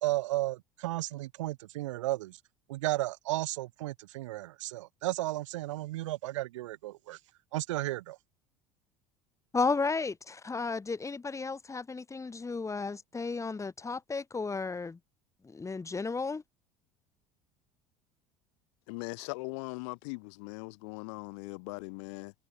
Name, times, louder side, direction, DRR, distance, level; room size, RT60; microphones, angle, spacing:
voice 1, 0.0-2.4 2.7-7.2 7.5-8.2, right 17 dB, 65° right, 1.8 m, -34 dB
voice 2, 9.5-15.0 15.4-16.4, left 4 dB, 15° left, 3.8 m, -33 dB
voice 3, 18.9-22.3, left 31 dB, 60° left, 5.8 m, -40 dB
figure-of-eight pair, 65°, 17 cm